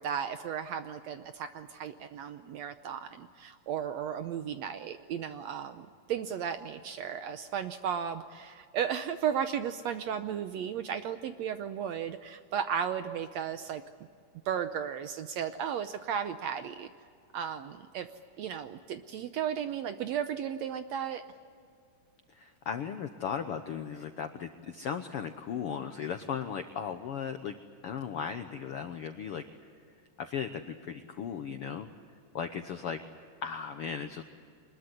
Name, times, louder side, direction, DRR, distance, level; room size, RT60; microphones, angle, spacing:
voice 1, 0.0-13.8 14.4-16.9 17.3-18.1 18.4-21.2, right 8 dB, 75° right, 9 dB, 1.7 m, -35 dB
voice 2, 22.3-27.6 27.8-29.4 30.2-31.9 32.3-33.0 33.4-34.2, left 7 dB, 75° left, 8 dB, 1.3 m, -36 dB
24.0 x 21.0 x 9.8 m, 2.2 s
omnidirectional pair, 3.8 m